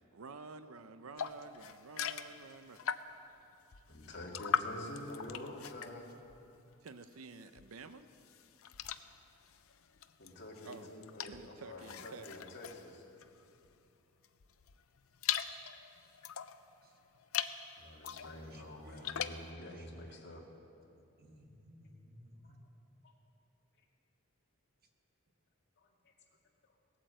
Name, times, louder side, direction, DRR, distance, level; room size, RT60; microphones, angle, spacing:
voice 1, 0.1-2.9 6.8-8.1 10.6-10.9 11.2-12.5, right 4 dB, 75° right, 11 dB, 0.6 m, -50 dB
sound 1, 1.2-3.3 3.7-7.1 7.5-13.8 14.2-16.6 17.1-17.6 18.0-19.5, left 8 dB, 70° left, 0.6 m, -41 dB
voice 2, 3.9-6.2 10.2-13.1 17.8-20.4 22.4-22.5 23.0-23.1 25.8-26.1, left 1 dB, 55° left, -1 dB, 2.2 m, -48 dB
voice 3, 18.4-19.2 19.7-20.2 20.9-22.7, equal, 45° right, 3 dB, 1.5 m, -59 dB
18.0 x 8.7 x 7.7 m, 2.8 s
head